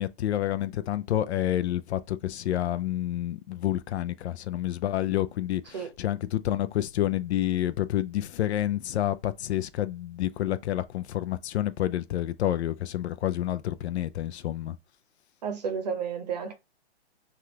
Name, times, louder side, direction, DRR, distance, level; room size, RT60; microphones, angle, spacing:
voice 1, 0.0-14.8, left 13 dB, 85° left, 0.5 m, -29 dB
voice 2, 15.4-16.5, right 6 dB, 40° right, 0.7 m, -31 dB
3.4 x 2.4 x 2.7 m
hypercardioid pair, 175°, 32 cm